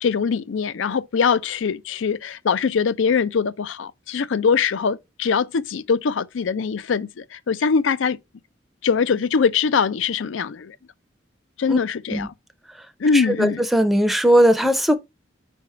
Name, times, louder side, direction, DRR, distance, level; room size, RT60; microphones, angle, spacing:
voice 1, 0.0-8.2 8.8-10.8 11.6-12.3 13.0-13.6, left 5 dB, 85° left, 0.5 m, -22 dB
voice 2, 13.1-14.9, equal, ahead, 0.5 m, -18 dB
4.9 x 3.5 x 5.5 m
head